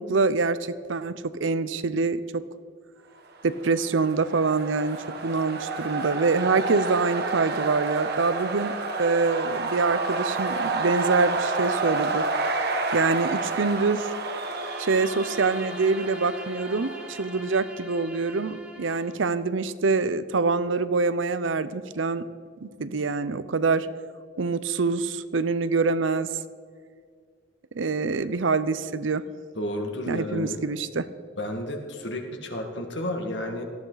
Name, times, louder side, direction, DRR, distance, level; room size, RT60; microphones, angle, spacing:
voice 1, 0.0-2.4 3.4-5.0 5.2-12.3 12.9-14.1 14.8-22.2 22.6-23.9 24.4-26.3 27.7-29.2 30.1-31.1, right 4 dB, 85° right, 14 dB, 0.7 m, -25 dB
sound 1, 3.6-17.3, right 3 dB, 55° right, 1.4 m, -30 dB
Bowed string instrument, 14.4-19.3, right 1 dB, 5° right, 1.3 m, -41 dB
voice 2, 29.6-30.6 31.4-33.6, left 1 dB, 65° left, 3 dB, 2.0 m, -31 dB
18.0 x 13.5 x 4.0 m, 2.1 s
head